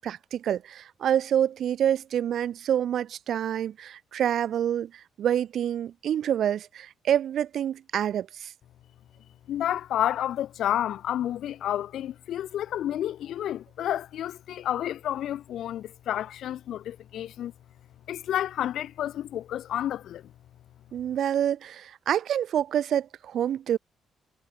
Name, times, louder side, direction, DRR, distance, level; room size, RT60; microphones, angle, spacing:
voice 1, 0.0-4.9 5.2-8.5 20.9-23.8, right 10 dB, 65° right, 1.1 m, -27 dB
voice 2, 9.5-17.5 18.1-20.2, left 11 dB, 75° left, 0.5 m, -30 dB
cardioid pair, 90°, 0 cm